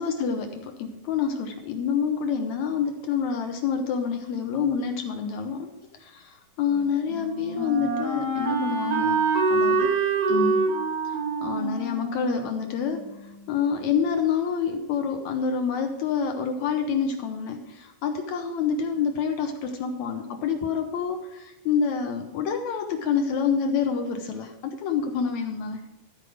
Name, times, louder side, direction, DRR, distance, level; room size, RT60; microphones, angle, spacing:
voice 1, 0.0-5.7 6.0-9.9 10.3-10.7 11.4-13.1 13.5-25.8, left 6 dB, 75° left, 5 dB, 1.7 m, -27 dB
Wind instrument woodwind instrument, 6.7-13.5, right 4 dB, 85° right, 4.2 m, -26 dB
14.0 x 4.9 x 6.3 m, 0.99 s
omnidirectional pair, 4.2 m